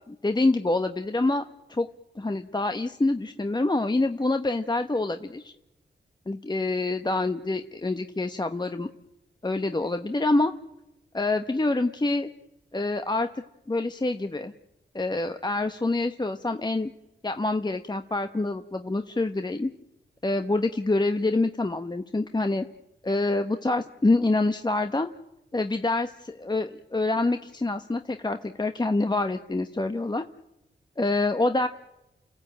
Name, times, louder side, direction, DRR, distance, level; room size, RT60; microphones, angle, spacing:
voice 1, 0.1-1.4 1.7-1.9 2.1-5.5 6.3-8.9 9.4-10.5 11.1-12.3 12.7-13.3 13.7-14.5 14.9-16.9 17.2-19.7 20.2-22.7 23.0-25.1 25.5-30.2 31.0-31.7, left 2 dB, 20° left, 7 dB, 1.0 m, -26 dB
29.5 x 15.0 x 8.9 m, 0.93 s
cardioid pair, 75°, 20 cm